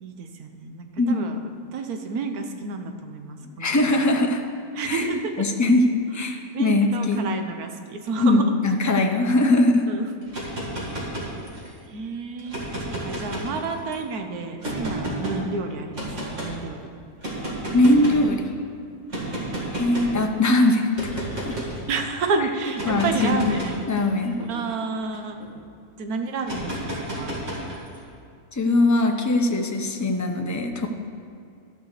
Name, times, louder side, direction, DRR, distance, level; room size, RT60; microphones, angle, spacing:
voice 1, 0.0-4.1 4.7-5.4 6.2-8.6 9.9-10.1 11.8-16.1 16.4-16.9 19.1-19.4 20.2-20.5 21.9-23.8 24.5-25.4 26.0-27.3, right 4 dB, 85° right, 5 dB, 1.4 m, -30 dB
voice 2, 1.0-1.3 3.6-4.5 4.9-7.2 8.2-9.8 17.7-18.5 19.7-20.9 21.2-21.6 22.8-23.4 23.9-24.4 28.5-30.9, left 2 dB, 25° left, 3 dB, 0.4 m, -21 dB
sound 1, 10.2-11.8 12.4-13.9 14.6-15.4 15.9-16.5 17.2-18.3 19.1-20.2 21.0-21.8 22.7-25.5 26.4-28.0, right 1 dB, 55° right, 2.4 m, -32 dB
13.0 x 5.0 x 6.6 m, 2.4 s
omnidirectional pair, 1.5 m